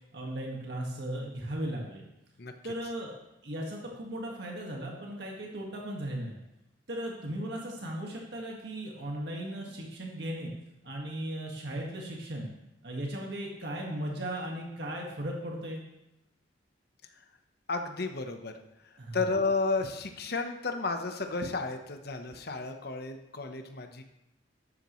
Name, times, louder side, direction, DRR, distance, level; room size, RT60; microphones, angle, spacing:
voice 1, 0.1-2.0 2.6-3.1 3.4-6.4 6.9-10.5 10.8-12.5 12.8-15.8 19.0-19.2, right 1 dB, 60° right, -1 dB, 1.8 m, -37 dB
voice 2, 17.7-18.5 18.8-24.0, left 3 dB, 55° left, 5 dB, 1.0 m, -32 dB
12.5 x 12.0 x 3.2 m, 0.89 s
head